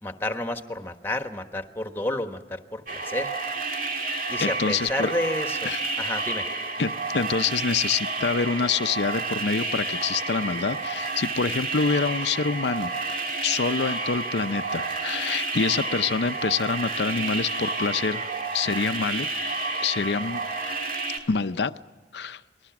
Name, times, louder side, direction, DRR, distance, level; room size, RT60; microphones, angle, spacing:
voice 1, 0.0-3.3 4.3-5.7 6.0-6.5, left 1 dB, 15° left, 7 dB, 1.3 m, -30 dB
sound 1, 2.9-21.2, right 3 dB, 50° right, 2.6 m, -30 dB
voice 2, 4.4-5.1 5.6-5.8 6.8-12.9 13.4-19.3 19.8-20.4 21.3-21.7 22.1-22.4, left 5 dB, 75° left, 12 dB, 0.6 m, -26 dB
28.0 x 20.5 x 6.0 m, 1.3 s
head